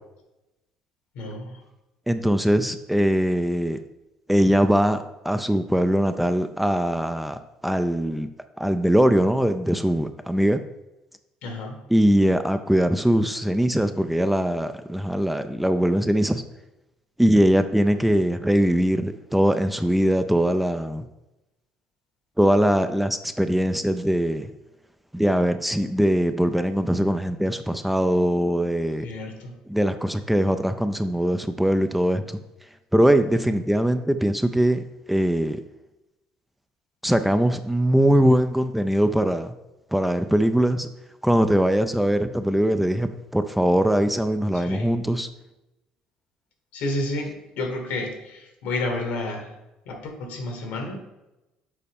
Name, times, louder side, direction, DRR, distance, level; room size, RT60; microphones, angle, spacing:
voice 1, 1.1-1.6 11.4-11.8 29.0-29.6 44.5-44.9 46.7-49.5 49.9-51.0, left 2 dB, 75° left, 3 dB, 1.3 m, -31 dB
voice 2, 2.1-3.8 4.3-8.3 8.6-10.6 11.9-16.4 17.2-21.0 22.4-24.5 25.1-29.1 29.7-32.4 32.9-35.6 37.0-39.5 39.9-40.9 41.2-45.3, equal, 5° right, 9 dB, 0.4 m, -21 dB
6.8 x 4.1 x 3.5 m, 0.97 s
supercardioid pair, 70°, 3 cm